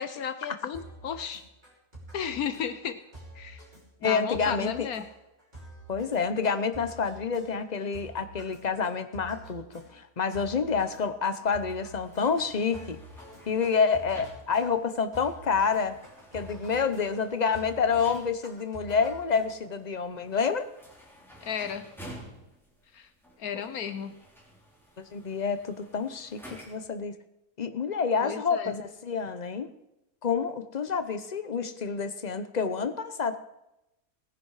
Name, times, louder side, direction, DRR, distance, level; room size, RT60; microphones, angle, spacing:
voice 1, 0.0-1.4 2.1-3.0 3.3-3.6 4.0-5.0 21.4-21.8 22.9-23.1 23.4-24.1 28.2-28.7, left 7 dB, 75° left, 10 dB, 1.3 m, -34 dB
sound 1, 0.7-19.8, right 1 dB, 25° right, 5.5 m, -49 dB
voice 2, 4.0-4.9 5.9-13.0 13.5-16.0 16.3-20.7 25.0-27.1 27.6-29.7 30.2-33.4, left 5 dB, 35° left, 10 dB, 0.8 m, -28 dB
sound 2, 11.9-27.0, equal, ahead, 3.4 m, -52 dB
19.0 x 10.0 x 4.9 m, 0.90 s
omnidirectional pair, 1.6 m